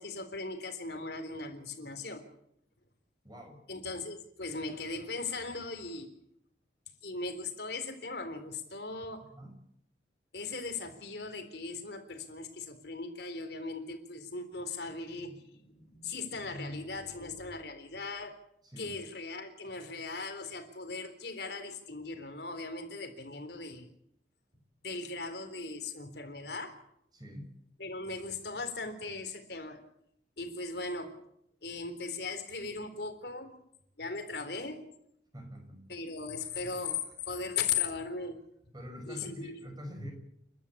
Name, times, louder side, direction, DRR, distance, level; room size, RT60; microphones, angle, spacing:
voice 1, 0.0-2.2 3.7-6.1 7.0-9.3 10.3-18.4 18.8-23.9 24.8-26.8 27.8-29.8 30.4-31.1 31.6-33.5 34.0-34.8 35.9-38.4 39.1-39.5 40.0-40.1, left 4 dB, 65° left, 8 dB, 3.8 m, -38 dB
voice 2, 3.2-3.6 9.3-9.6 18.6-19.0 24.5-24.6 27.1-27.5 35.3-35.9 38.7-40.1, equal, 25° right, 4 dB, 5.8 m, -45 dB
30.0 x 12.5 x 8.7 m, 0.74 s
head